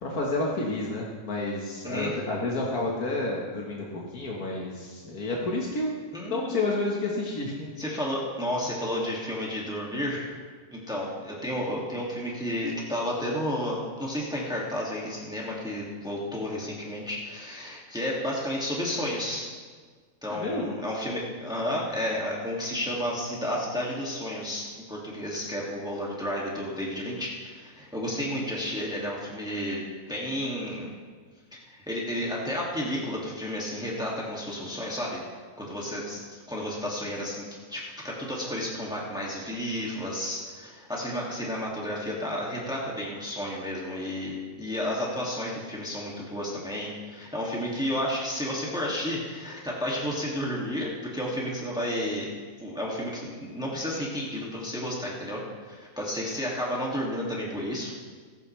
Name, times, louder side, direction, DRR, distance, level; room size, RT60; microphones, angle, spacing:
voice 1, 0.0-5.9 6.3-7.7 20.3-20.7, left 2 dB, 85° left, -3 dB, 2.0 m, -30 dB
voice 2, 1.8-2.2 6.1-6.6 7.8-10.3 10.7-19.5 20.2-30.9 31.5-35.2 35.6-37.4 37.7-52.3 52.6-57.9, equal, 5° right, -4 dB, 2.2 m, -32 dB
25.5 x 9.1 x 3.3 m, 1.5 s
omnidirectional pair, 1.5 m